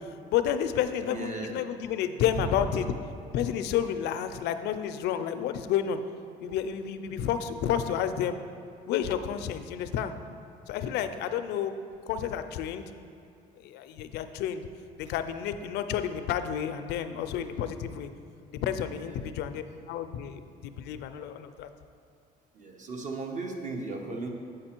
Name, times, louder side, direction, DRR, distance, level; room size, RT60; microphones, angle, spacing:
voice 1, 0.3-2.8 3.3-6.0 6.4-8.4 8.9-10.1 10.7-11.8 12.1-12.8 13.6-14.6 15.0-18.1 18.6-21.7, left 9 dB, 80° left, 10 dB, 0.4 m, -30 dB
voice 2, 1.0-1.6 2.3-2.7 11.1-11.4 19.0-19.2 22.5-24.3, right 2 dB, 45° right, 2 dB, 1.0 m, -36 dB
8.0 x 4.9 x 4.4 m, 2.5 s
cardioid pair, 110°, 17 cm